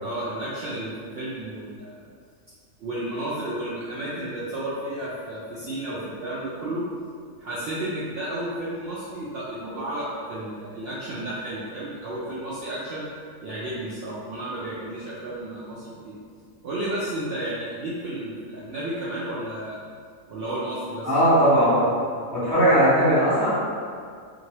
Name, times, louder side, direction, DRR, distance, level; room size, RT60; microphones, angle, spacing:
voice 1, 0.0-2.0 2.8-6.9 7.4-13.1 13.4-16.2 16.6-19.8 20.3-21.1, right 1 dB, 70° right, -8 dB, 0.6 m, -32 dB
voice 2, 21.0-21.8 22.3-23.5, equal, 15° right, -12 dB, 0.8 m, -18 dB
2.9 x 2.6 x 2.8 m, 2.1 s
omnidirectional pair, 1.5 m